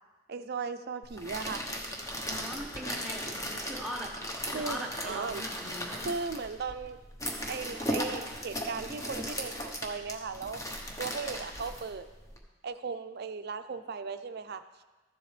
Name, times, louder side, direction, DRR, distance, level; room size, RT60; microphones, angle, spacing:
voice 1, 0.3-1.6 4.5-5.4 6.1-7.0 7.5-10.6 11.0-12.1 12.6-14.6, right 5 dB, 50° right, 10 dB, 0.4 m, -37 dB
sound 1, 1.0-12.4, equal, 15° left, 1.0 m, -37 dB
voice 2, 2.3-4.1 4.5-6.0, right 1 dB, 5° right, -3 dB, 1.3 m, -40 dB
13.5 x 7.7 x 3.3 m, 1.2 s
head